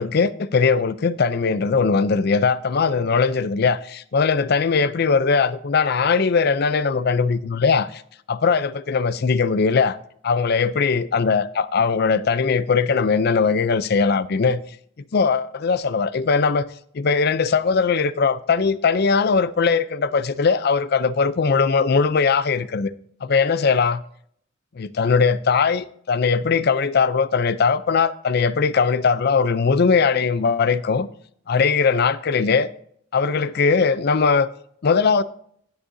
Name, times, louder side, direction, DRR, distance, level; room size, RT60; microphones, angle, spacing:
voice 1, 0.0-8.0 8.3-10.0 10.2-14.6 15.1-16.7 16.9-22.9 23.2-24.0 24.8-31.1 31.5-32.7 33.1-34.5 34.8-35.2, left 5 dB, 55° left, 0.5 m, -20 dB
16.5 x 6.4 x 2.7 m
head